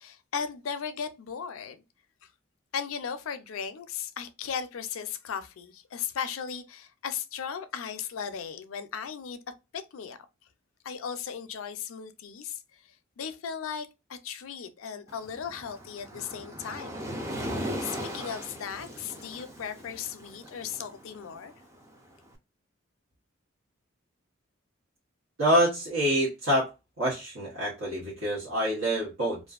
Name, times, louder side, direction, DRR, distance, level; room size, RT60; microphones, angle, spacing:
voice 1, 0.0-1.8 2.7-9.4 9.7-10.2 10.8-12.6 13.2-17.0 17.5-21.5, left 7 dB, 85° left, 0.4 m, -36 dB
Waves surf, 15.1-22.2, equal, 15° right, 0.4 m, -38 dB
voice 2, 25.4-26.7 27.0-29.4, equal, 85° right, 1.1 m, -26 dB
2.5 x 2.3 x 2.3 m
head